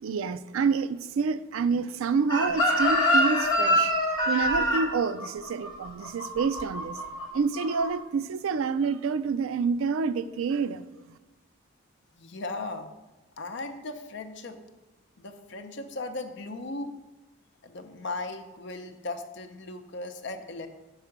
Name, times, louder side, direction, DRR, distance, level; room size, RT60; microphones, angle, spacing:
voice 1, 0.0-3.9 4.3-7.0 7.3-10.8, right 5 dB, 75° right, 14 dB, 0.4 m, -28 dB
Chicken rooster, 2.3-7.3 7.5-7.9, left 1 dB, 20° left, 1.5 m, -25 dB
voice 2, 12.2-12.9 13.4-14.6 15.2-16.9 17.6-20.7, left 2 dB, 55° left, 7 dB, 0.6 m, -37 dB
5.7 x 4.8 x 6.5 m, 1.1 s
head